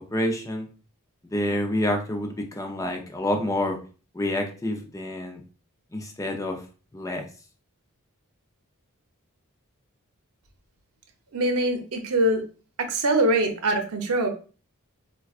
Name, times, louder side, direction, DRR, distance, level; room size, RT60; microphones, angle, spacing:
voice 1, 0.1-0.7 1.3-3.8 4.1-5.4 5.9-6.6 6.9-7.2, left 1 dB, 15° left, 3 dB, 0.5 m, -28 dB
voice 2, 11.3-12.4 12.8-14.3, right 1 dB, 85° right, 5 dB, 0.7 m, -23 dB
4.5 x 2.3 x 2.4 m, 0.37 s
head